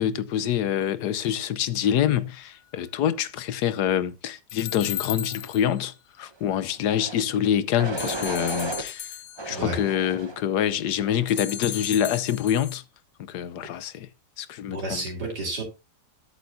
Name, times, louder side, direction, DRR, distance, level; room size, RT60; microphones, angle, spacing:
voice 1, 0.0-9.1 9.5-12.8 13.3-14.1 14.4-15.0, left 10 dB, 75° left, 1.3 m, -26 dB
sound 1, 4.5-5.8 8.0-9.6 11.3-12.8, left 10 dB, 50° left, 0.7 m, -35 dB
sound 2, 6.8-7.2 7.8-8.8 9.4-10.4 11.0-11.4, right 3 dB, 35° right, 0.4 m, -34 dB
voice 2, 14.7-15.6, right 2 dB, 70° right, 3.5 m, -31 dB
11.5 x 8.8 x 2.7 m
omnidirectional pair, 1.8 m